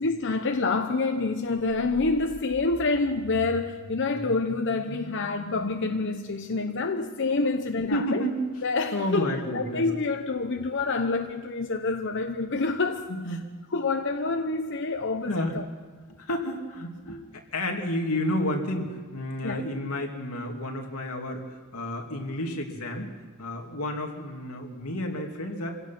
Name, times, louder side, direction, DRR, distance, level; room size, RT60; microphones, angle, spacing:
voice 1, 0.0-8.2 8.6-13.1 13.7-15.6 19.4-19.6, left 3 dB, 55° left, 6 dB, 0.9 m, -27 dB
sound 1, 1.6-11.5, left 1 dB, 40° left, 1.5 m, -46 dB
voice 2, 7.9-8.5 8.9-9.8 13.1-13.5 15.3-15.6 16.1-23.1 23.4-25.7, left 1 dB, 85° left, 2 dB, 2.8 m, -31 dB
26.0 x 16.5 x 6.0 m, 1.4 s
head